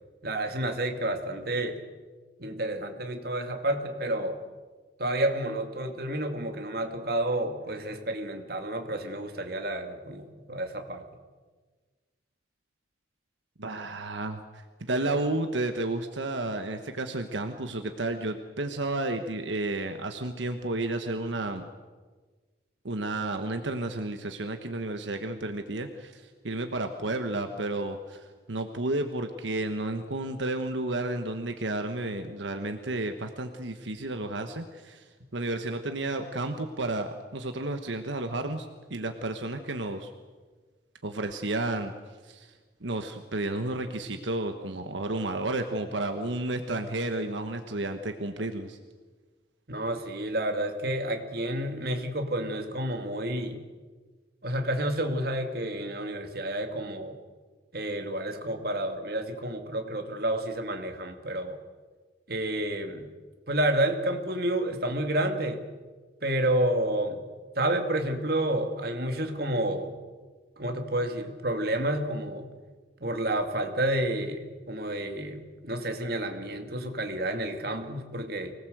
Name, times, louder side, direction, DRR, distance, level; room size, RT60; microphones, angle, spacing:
voice 1, 0.2-1.8 2.4-4.4 5.0-11.0 49.7-53.6 54.4-57.1 57.7-61.6 62.3-63.1 63.5-65.6 66.2-67.2 67.6-70.0 70.6-72.5 73.0-78.5, right 1 dB, 55° right, 5 dB, 2.3 m, -30 dB
voice 2, 13.6-14.6 14.9-21.6 22.8-40.1 41.0-41.9 42.2-42.5 42.8-48.8, right 2 dB, 80° right, 6 dB, 1.3 m, -32 dB
25.0 x 18.5 x 8.0 m, 1.4 s
head